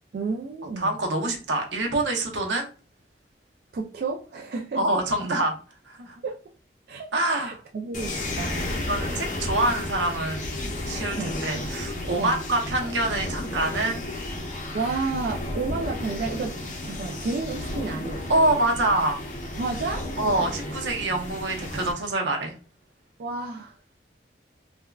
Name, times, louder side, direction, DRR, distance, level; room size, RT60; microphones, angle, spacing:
voice 1, 0.1-1.0 3.7-4.8 6.2-6.3 6.9-7.1 7.3-8.7 11.2-11.3 12.2-12.4 14.7-16.5 16.8-18.2 19.6-20.1 23.2-23.8, right 4 dB, 55° right, 1 dB, 0.3 m, -31 dB
voice 2, 0.8-2.7 4.7-5.6 5.9-6.2 7.1-7.6 8.9-10.5 10.9-14.1 18.3-19.2 20.2-22.5, right 2 dB, 85° right, 2 dB, 0.7 m, -25 dB
sound 1, 7.9-21.9, left 1 dB, 45° left, 0.5 m, -33 dB
3.4 x 2.1 x 2.3 m, 0.35 s
head